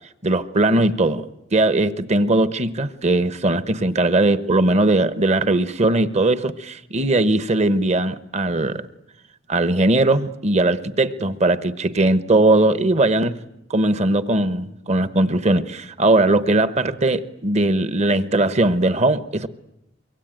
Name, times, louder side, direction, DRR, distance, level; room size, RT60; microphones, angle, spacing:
voice 1, 0.2-8.8 9.5-13.4 13.7-19.5, right 2 dB, 35° right, 12 dB, 1.1 m, -19 dB
24.5 x 23.5 x 9.0 m, 0.86 s
head